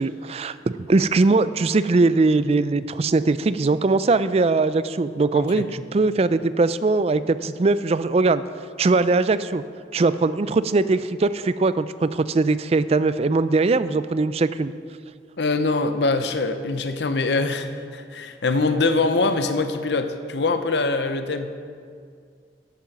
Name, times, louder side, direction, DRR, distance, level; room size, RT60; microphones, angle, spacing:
voice 1, 0.0-8.4 8.8-9.6 9.9-14.7, right 3 dB, 35° right, 14 dB, 0.4 m, -21 dB
voice 2, 5.3-5.7 15.4-21.5, left 3 dB, 70° left, 9 dB, 0.7 m, -23 dB
11.5 x 8.8 x 5.9 m, 2.2 s
head